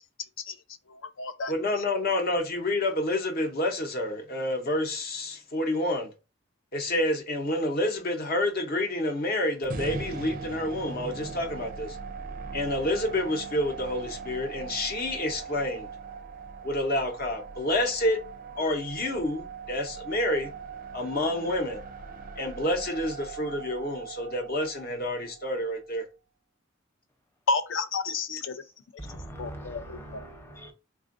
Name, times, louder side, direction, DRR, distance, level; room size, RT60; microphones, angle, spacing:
voice 1, 0.9-1.5 27.5-28.5 29.4-30.3, left 3 dB, 75° left, 0.5 m, -31 dB
voice 2, 1.5-6.1 6.7-12.0 12.5-15.9 16.6-18.2 18.6-20.5 20.9-21.8 22.4-26.0, left 1 dB, 50° left, 0.8 m, -28 dB
sound 1, 9.7-25.8, right 5 dB, 45° right, 0.4 m, -40 dB
voice 3, 29.0-30.7, right 1 dB, 10° left, 0.7 m, -42 dB
3.5 x 2.4 x 2.5 m
head